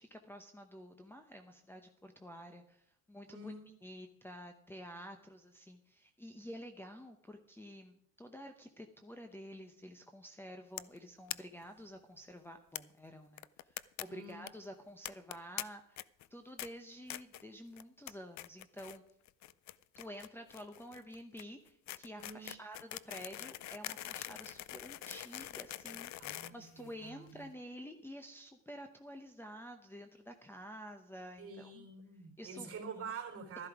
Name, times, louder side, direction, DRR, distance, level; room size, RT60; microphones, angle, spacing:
voice 1, 0.0-16.0 16.3-19.0 20.0-31.9 32.4-32.7, equal, 5° left, 6 dB, 0.9 m, -50 dB
voice 2, 3.3-3.7 14.1-14.4 22.2-22.5 26.2-27.3 31.4-33.7, right 5 dB, 40° right, 3 dB, 3.6 m, -47 dB
sound 1, 10.8-11.0 11.3-11.4 11.6-11.7 11.9-12.0 12.8-12.9 13.4-14.0 14.3-14.5 15.1-15.6 16.0-16.3 16.6-16.7 17.1-17.4 17.8-18.1 18.4-19.0 19.3-27.3, left 14 dB, 55° left, 0.5 m, -44 dB
13.0 x 11.5 x 4.9 m, 0.72 s
cardioid pair, 120°, 35 cm